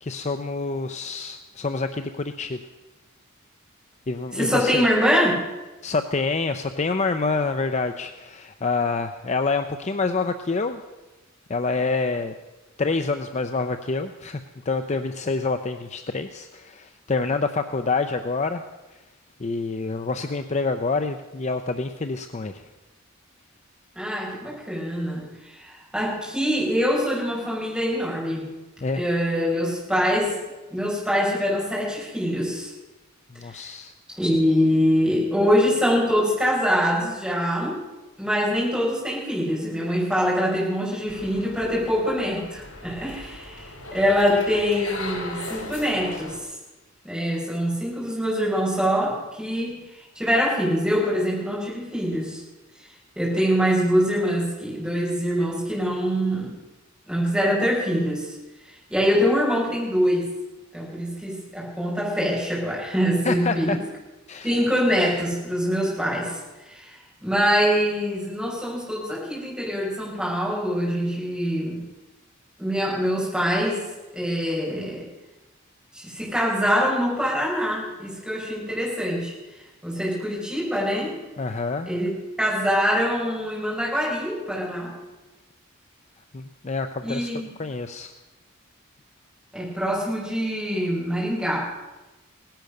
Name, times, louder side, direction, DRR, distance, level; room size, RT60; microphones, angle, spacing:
voice 1, 0.0-2.6 4.1-4.8 5.8-10.8 11.5-12.3 12.8-18.6 19.4-22.6 28.8-29.0 33.3-33.9 63.2-63.8 64.3-64.6 81.4-81.9 86.3-87.3 87.6-88.1, left 3 dB, 35° left, 8 dB, 0.6 m, -27 dB
voice 2, 4.3-5.3 23.9-25.2 25.5-28.5 28.9-30.3 30.7-32.7 34.2-37.8 38.2-46.4 47.0-49.8 50.2-52.4 53.2-56.6 57.1-58.3 58.9-60.3 60.7-63.8 64.4-66.4 66.7-71.8 72.6-73.8 74.1-75.1 75.9-79.3 79.8-81.2 81.9-82.1 82.4-84.9 87.0-87.6 89.5-91.7, equal, 5° right, -5 dB, 5.7 m, -24 dB
sound 1, 41.1-46.4, left 2 dB, 90° left, 4.0 m, -38 dB
17.5 x 10.5 x 6.6 m, 1.1 s
head